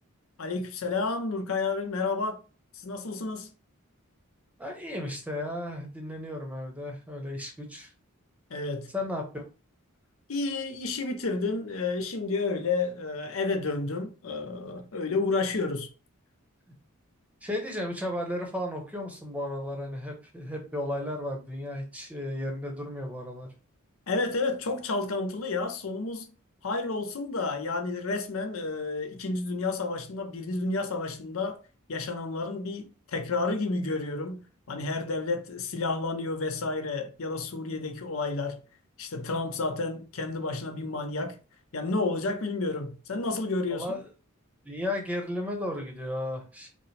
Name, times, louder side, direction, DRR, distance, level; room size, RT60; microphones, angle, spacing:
voice 1, 0.4-2.4 2.7-3.5 8.5-8.9 10.3-15.9 24.1-26.3 26.6-31.6 31.9-38.6 39.0-41.4 41.7-43.9, left 3 dB, 70° left, 0.7 m, -31 dB
voice 2, 4.6-7.9 8.9-9.4 17.4-23.5 43.7-44.1 44.6-46.7, left 1 dB, 5° right, 0.8 m, -34 dB
5.1 x 2.1 x 3.2 m
head